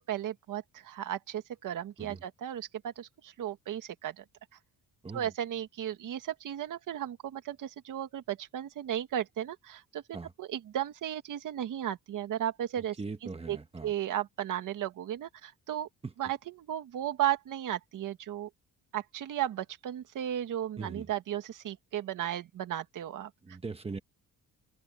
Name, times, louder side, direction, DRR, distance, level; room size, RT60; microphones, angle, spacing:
voice 1, 0.1-4.2 5.1-10.0 10.4-13.0 13.5-13.6 13.8-15.9 16.2-18.5 18.9-23.3, right 11 dB, 65° right, 2.0 m, -35 dB
voice 2, 13.0-13.9 16.0-16.1 20.8-21.1 23.4-24.0, right 4 dB, 15° right, 1.3 m, -40 dB
open air
cardioid pair, 170°, 34 cm